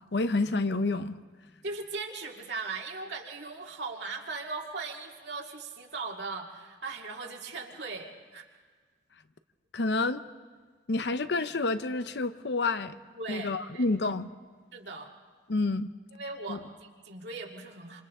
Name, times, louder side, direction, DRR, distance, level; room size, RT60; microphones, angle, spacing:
voice 1, 0.1-1.2 9.7-10.3 10.9-13.0 13.3-14.3 15.5-15.9 16.5-16.6, left 3 dB, 70° left, 11 dB, 0.8 m, -29 dB
voice 2, 1.6-8.4 13.1-13.8 14.7-15.1 16.1-18.0, right 3 dB, 70° right, 1 dB, 2.3 m, -39 dB
28.0 x 27.0 x 3.7 m, 1.4 s
head